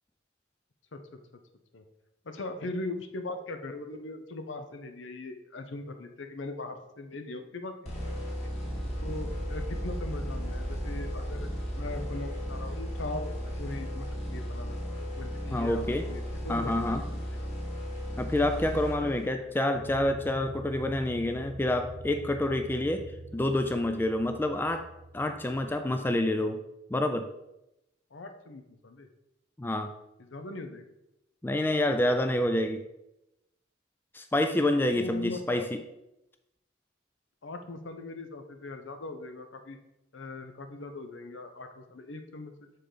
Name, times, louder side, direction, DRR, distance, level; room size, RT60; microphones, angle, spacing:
voice 1, 2.2-7.8 8.0-8.1 8.4-8.5 8.8-11.5 11.7-13.3 13.6-17.4 18.7-19.5 28.1-29.1 30.2-30.9 34.9-35.7 37.4-39.8 40.1-42.5, left 2 dB, 80° left, 7 dB, 0.8 m, -40 dB
sound 1, 7.9-19.5, equal, 35° left, 1.7 m, -36 dB
sound 2, 8.6-16.5 19.8-25.8, right 1 dB, 60° right, 0.8 m, -42 dB
voice 2, 15.5-16.1 16.5-17.0 18.2-23.0 23.3-24.8 25.1-26.6 26.9-27.3 29.6-29.9 31.4-32.8 34.1-35.8, left 1 dB, 10° left, 7 dB, 0.3 m, -28 dB
6.8 x 3.9 x 5.0 m, 0.90 s
head